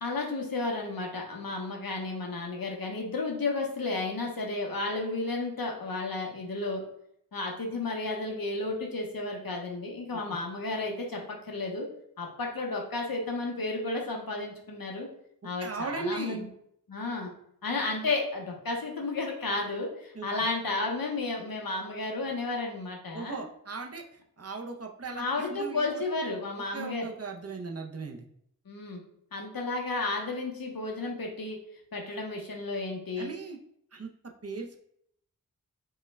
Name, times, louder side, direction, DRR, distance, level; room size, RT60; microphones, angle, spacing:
voice 1, 0.0-6.8 7.3-11.9 12.2-15.1 15.4-16.5 16.9-17.3 17.6-23.4 25.1-27.1 28.7-29.0 29.3-31.6 31.9-33.3, left 3 dB, 80° left, 1 dB, 0.9 m, -32 dB
voice 2, 15.6-16.4 20.1-20.3 23.1-24.0 24.4-26.0 26.7-28.3 33.2-33.6 33.9-34.1 34.4-34.8, right 4 dB, 45° right, 2 dB, 0.6 m, -37 dB
5.4 x 2.2 x 3.3 m, 0.71 s
wide cardioid pair, 55°, 35 cm